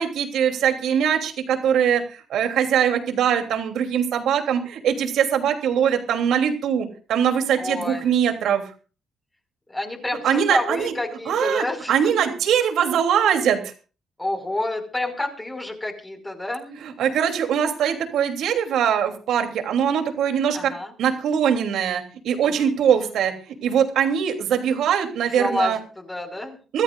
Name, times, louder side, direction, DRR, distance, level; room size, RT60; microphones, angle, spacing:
voice 1, 0.0-8.7 10.2-10.9 11.3-13.7 16.8-20.7 21.0-25.8 26.7-26.8, right 8 dB, 80° right, 5 dB, 3.1 m, -22 dB
voice 2, 7.6-8.0 9.7-12.3 14.2-16.8 20.5-20.9 22.4-22.7 25.4-26.6, left 2 dB, 15° left, 2 dB, 5.5 m, -29 dB
25.0 x 14.0 x 2.5 m, 0.36 s
cardioid pair, 90°, 0 cm